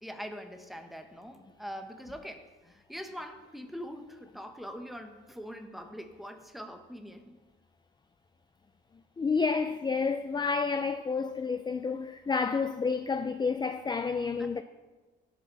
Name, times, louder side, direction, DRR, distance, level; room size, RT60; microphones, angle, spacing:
voice 1, 0.0-7.4 14.4-14.6, equal, ahead, 1.4 m, -43 dB
voice 2, 9.2-14.6, left 5 dB, 20° left, 0.5 m, -30 dB
17.0 x 7.5 x 4.1 m
cardioid pair, 90°, 20 cm